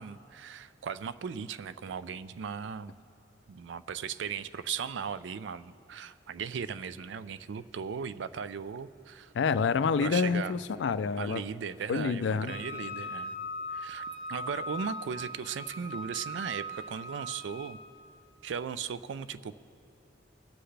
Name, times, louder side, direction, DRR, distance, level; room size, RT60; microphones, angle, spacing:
voice 1, 0.0-2.9 3.5-9.3 10.0-10.6 11.2-13.3 13.7-17.8 18.4-19.6, right 6 dB, 75° right, 14 dB, 0.4 m, -37 dB
voice 2, 9.3-11.4 11.9-12.5, left 5 dB, 70° left, 14 dB, 0.4 m, -28 dB
Wind instrument woodwind instrument, 12.5-17.8, left 1 dB, 30° right, 1.6 m, -40 dB
23.5 x 7.8 x 3.3 m, 2.8 s
head